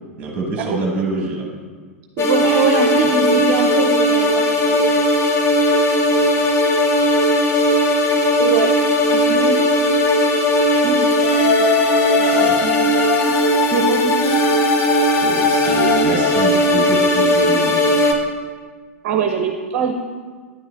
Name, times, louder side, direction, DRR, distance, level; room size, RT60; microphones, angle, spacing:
voice 1, 0.2-1.5 12.3-12.6 15.2-18.2, right 2 dB, 20° right, 0 dB, 1.3 m, -25 dB
sound 1, 2.2-18.1, left 1 dB, 35° left, 1.0 m, -17 dB
voice 2, 2.2-5.1 6.1-6.5 8.4-8.7 9.1-9.6 10.8-11.1 11.4-11.5 12.2-12.9 13.7-14.4 19.0-19.9, right 6 dB, 45° right, 5 dB, 0.6 m, -23 dB
9.2 x 6.3 x 3.7 m, 1.5 s
figure-of-eight pair, 100°, 7 cm